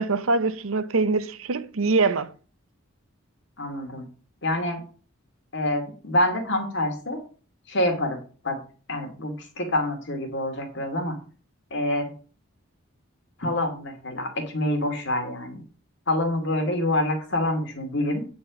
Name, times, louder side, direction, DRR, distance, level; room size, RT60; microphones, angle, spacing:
voice 1, 0.0-2.3, right 3 dB, 75° right, 0.8 m, -23 dB
voice 2, 3.6-4.1 4.4-4.8 5.5-7.2 7.7-8.2 8.4-8.6 8.9-11.2 11.7-12.1 13.4-15.6 16.1-18.3, left 1 dB, 55° left, 2.5 m, -26 dB
9.7 x 4.5 x 6.9 m
head